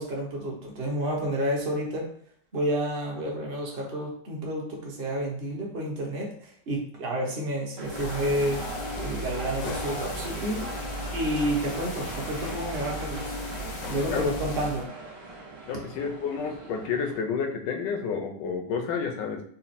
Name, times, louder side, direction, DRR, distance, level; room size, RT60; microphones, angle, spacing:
voice 1, 0.0-2.1 2.5-8.6 9.0-10.6 11.1-13.4 13.9-14.9, right 1 dB, 40° right, -2 dB, 0.9 m, -30 dB
sound 1, 7.8-14.8, left 2 dB, 65° left, 0.9 m, -36 dB
sound 2, 7.8-17.2, right 2 dB, 75° right, 1.5 m, -39 dB
voice 2, 15.7-19.4, left 5 dB, 85° left, 4 dB, 1.3 m, -30 dB
4.1 x 2.1 x 4.1 m, 0.64 s
omnidirectional pair, 1.9 m